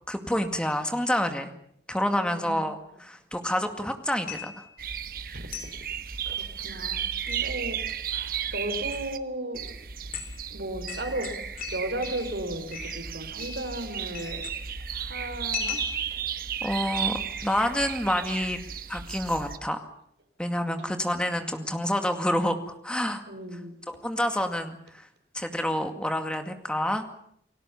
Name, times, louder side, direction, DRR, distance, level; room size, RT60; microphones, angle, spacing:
voice 1, 0.1-1.5 1.9-4.7 16.6-18.6 18.9-19.9 20.4-23.2 23.9-25.1 25.3-27.1, left 1 dB, 5° left, 6 dB, 2.2 m, -28 dB
sound 1, 4.3-4.7 5.5-5.8 7.1-7.5 8.8-9.0 9.7-9.8 10.1-10.4 10.9-12.4 12.7-13.0 13.4-13.9 14.1-14.8 15.5-16.3, left 8 dB, 50° left, 3.9 m, -38 dB
sound 2, 4.8-9.2 9.5-19.6, right 8 dB, 55° right, 1.2 m, -34 dB
voice 2, 5.3-5.7 6.3-7.8 8.1-9.6 10.5-11.3 11.7-14.4 14.9-15.8 16.1-16.2 20.6-21.1 23.3-23.7, right 1 dB, 85° right, 7 dB, 4.6 m, -35 dB
30.0 x 20.0 x 7.2 m, 0.68 s
head